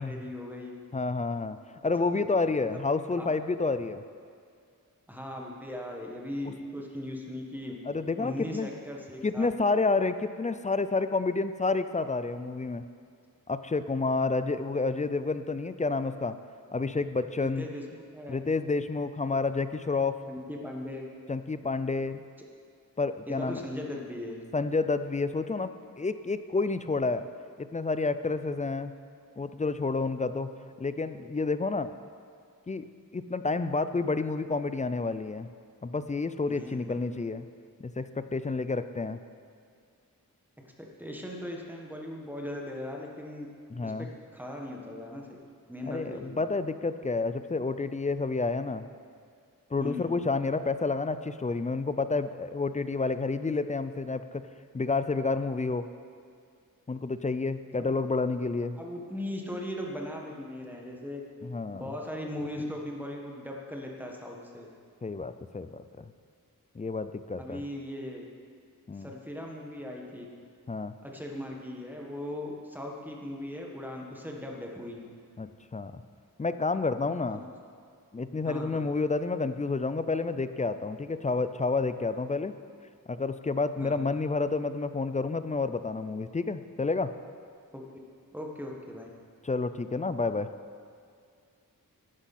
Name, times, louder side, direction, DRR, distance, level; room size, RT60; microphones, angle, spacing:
voice 1, 0.0-0.8 1.8-2.8 3.2-3.3 5.1-7.7 8.2-9.5 17.4-17.8 18.1-18.4 20.3-21.1 23.3-24.4 36.5-36.9 40.8-43.5 43.8-45.3 45.7-46.4 49.8-50.1 57.8-57.9 58.8-61.2 61.7-64.7 67.4-68.2 68.9-70.3 71.0-75.0 77.3-77.5 78.4-78.8 83.8-84.0 87.7-87.9 88.3-89.1, left 1 dB, 5° right, -1 dB, 1.4 m, -39 dB
voice 2, 0.9-1.6 1.8-4.0 7.9-8.7 9.2-12.8 13.5-16.4 16.7-17.7 18.3-20.2 21.3-22.2 23.0-23.6 24.5-27.2 27.6-28.9 29.4-30.5 30.8-31.9 32.7-35.5 35.8-37.5 37.8-39.2 43.7-44.1 45.9-48.9 49.7-54.4 54.7-55.9 56.9-58.8 61.4-61.8 65.0-66.1 66.8-67.6 68.9-69.1 70.7-70.9 75.4-76.0 76.4-77.4 78.1-82.5 83.1-87.1 89.4-90.5, left 3 dB, 20° left, 11 dB, 0.4 m, -29 dB
11.5 x 9.9 x 4.2 m, 2.3 s
wide cardioid pair, 110°, 35 cm